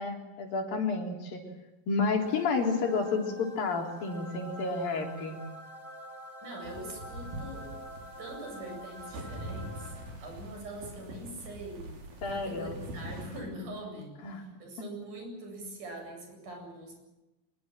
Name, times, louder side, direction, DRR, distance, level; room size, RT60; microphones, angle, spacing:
voice 1, 0.0-1.4 1.9-5.4 12.2-12.8 14.2-14.4, left 4 dB, 70° left, 3 dB, 5.4 m, -30 dB
sound 1, 2.2-10.4, equal, 10° right, 3.7 m, -47 dB
voice 2, 6.4-7.7 8.2-12.0 12.3-16.9, right 1 dB, 60° right, 3 dB, 9.6 m, -43 dB
sound 2, 6.6-13.4, right 1 dB, 80° right, 6.7 m, -43 dB
25.5 x 22.5 x 7.7 m, 1.0 s
omnidirectional pair, 4.2 m